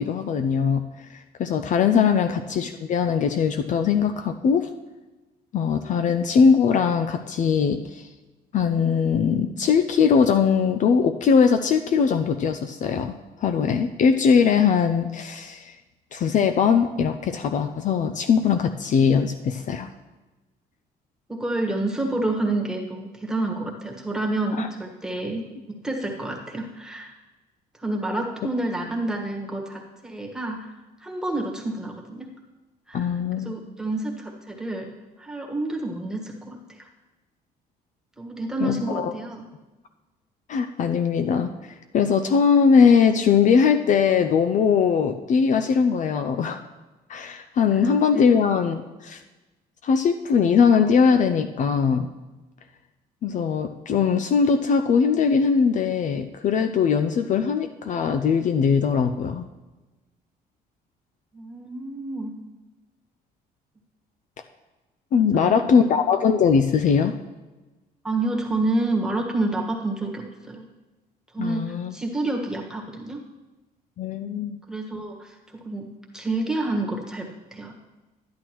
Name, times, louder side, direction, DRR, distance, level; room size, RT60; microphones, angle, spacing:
voice 1, 0.0-4.7 5.5-8.1 8.5-13.1 13.4-15.8 16.1-19.9 24.6-24.7 32.9-33.6 38.6-39.1 40.5-46.6 47.1-49.2 49.8-52.1 53.2-59.4 65.1-67.1 71.4-72.0 74.0-74.6, left 6 dB, 45° left, 8 dB, 0.4 m, -21 dB
voice 2, 21.3-27.1 27.7-30.7 31.0-32.3 32.9-34.9 35.2-36.9 38.2-39.4 47.7-47.8 48.1-48.2 61.3-62.3 65.1-65.6 68.0-70.6 71.3-73.2 74.7-75.9 76.1-77.7, right 2 dB, 5° right, -1 dB, 1.5 m, -29 dB
11.0 x 10.5 x 3.0 m, 1.2 s
cardioid pair, 110°, 17 cm